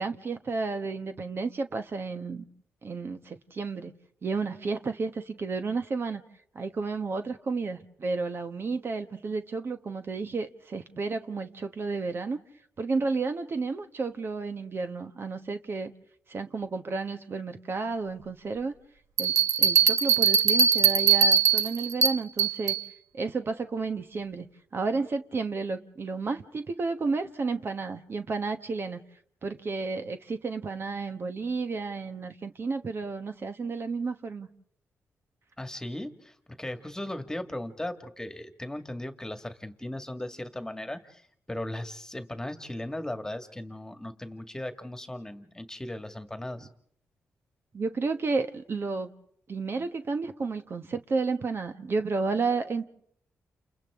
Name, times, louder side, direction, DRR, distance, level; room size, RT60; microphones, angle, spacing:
voice 1, 0.0-2.4 2.8-3.9 4.2-6.2 6.5-12.4 12.8-15.9 16.3-18.7 19.2-22.8 23.1-24.5 24.7-29.0 29.4-34.5 47.7-49.1 49.5-52.9, right 4 dB, 45° right, 8 dB, 1.2 m, -32 dB
sound 1, 19.2-22.8, right 7 dB, 85° right, 1.2 m, -22 dB
voice 2, 35.6-41.2 41.5-46.7, left 1 dB, 10° left, 7 dB, 2.0 m, -37 dB
29.5 x 29.0 x 3.7 m, 0.64 s
cardioid pair, 85°, 5 cm